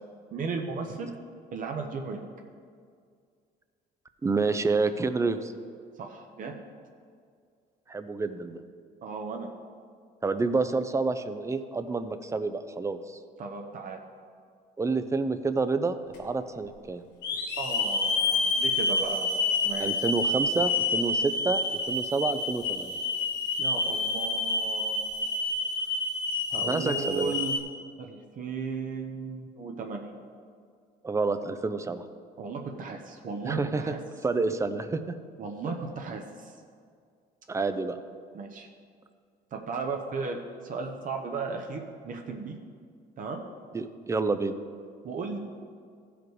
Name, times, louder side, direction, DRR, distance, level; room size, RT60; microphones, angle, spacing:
voice 1, 0.3-1.1 1.5-2.2 6.0-6.5 9.0-9.5 13.4-14.0 17.6-19.3 19.6-19.9 23.6-25.0 26.5-27.6 28.0-30.1 32.4-34.0 35.4-36.5 38.3-38.7 39.5-42.6 43.2-43.4 45.0-45.4, right 4 dB, 50° right, 2 dB, 1.0 m, -35 dB
voice 2, 4.2-5.5 7.9-8.6 10.2-13.2 14.8-17.0 19.8-23.0 26.6-27.3 31.0-32.0 33.4-34.0 34.2-35.2 37.5-38.0 43.7-44.6, right 3 dB, 15° right, 10 dB, 0.5 m, -28 dB
Hiss / Alarm, 16.1-16.2 17.2-27.6, left 3 dB, 90° left, 1.4 m, -28 dB
15.0 x 5.0 x 4.7 m, 2.2 s
cardioid pair, 110°, 17 cm